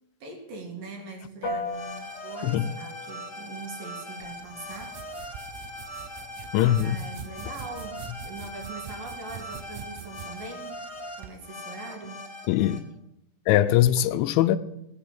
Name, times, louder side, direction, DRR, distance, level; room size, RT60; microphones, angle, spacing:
voice 1, 0.2-5.0 6.8-10.9 11.2-12.2, right 3 dB, 55° right, 3.4 m, -42 dB
Piano, 1.4-11.2, left 2 dB, 55° left, 2.5 m, -43 dB
sound 1, 1.7-12.8, left 1 dB, 25° left, 2.1 m, -41 dB
sound 2, 4.2-11.4, right 10 dB, 85° right, 2.1 m, -45 dB
voice 2, 6.5-7.0 12.5-12.8 13.5-14.6, left 12 dB, 85° left, 3.0 m, -21 dB
17.0 x 7.7 x 8.8 m
omnidirectional pair, 5.3 m